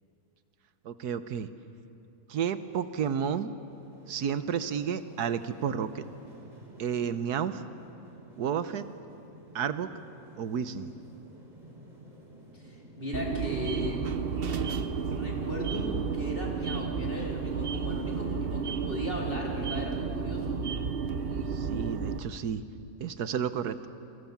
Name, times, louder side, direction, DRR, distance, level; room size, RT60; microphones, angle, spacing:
voice 1, 0.8-1.5 2.3-3.5 4.1-6.0 6.8-7.6 8.4-8.8 9.5-9.9 10.4-10.9 21.5-22.6 23.0-23.9, right 8 dB, 85° right, 12 dB, 1.5 m, -31 dB
sound 1, 3.6-20.0, right 1 dB, 25° right, 4.0 m, -52 dB
voice 2, 12.5-14.1 15.1-20.6, left 1 dB, 35° left, -2 dB, 4.3 m, -37 dB
sound 2, 13.1-22.2, right 5 dB, 45° right, 1.0 m, -32 dB
29.0 x 23.5 x 7.3 m, 2.7 s
omnidirectional pair, 1.7 m